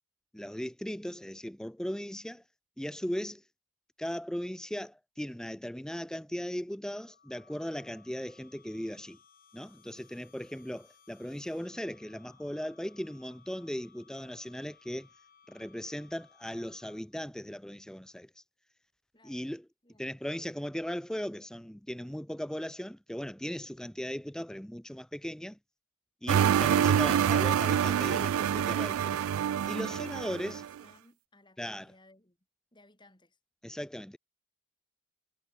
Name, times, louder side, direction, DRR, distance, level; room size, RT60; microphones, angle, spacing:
voice 1, 0.3-2.4 2.8-3.4 4.0-9.2 9.5-15.1 15.5-18.3 19.2-19.7 20.0-25.6 26.2-29.2 29.7-30.6 31.6-31.9 33.6-34.2, equal, 5° left, 0.5 m, -38 dB
sound 1, 6.8-17.2, left 6 dB, 45° left, 7.9 m, -62 dB
voice 2, 19.1-19.5 19.8-20.1 29.9-32.4 32.7-33.4, left 2 dB, 20° left, 5.4 m, -60 dB
sound 2, 26.3-30.7, right 9 dB, 90° right, 0.3 m, -26 dB
head